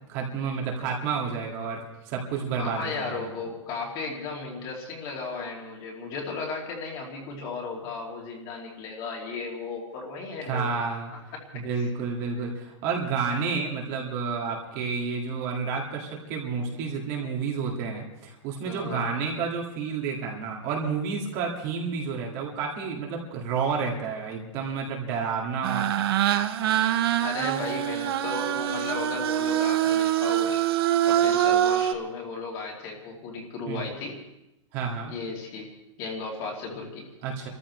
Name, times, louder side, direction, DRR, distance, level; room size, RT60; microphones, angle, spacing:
voice 1, 0.1-3.2 10.4-11.1 11.5-25.9 33.7-33.8 34.7-35.1 37.2-37.5, right 5 dB, 30° right, -1 dB, 2.0 m, -30 dB
voice 2, 2.5-10.8 11.1-11.9 18.6-19.1 27.2-30.7 31.0-34.2 35.1-35.7 36.0-37.1, left 4 dB, 25° left, -1 dB, 2.7 m, -35 dB
sound 1, 25.6-31.9, right 11 dB, 50° right, 0.8 m, -24 dB
29.5 x 14.0 x 3.2 m, 0.92 s
supercardioid pair, 175°, 16 cm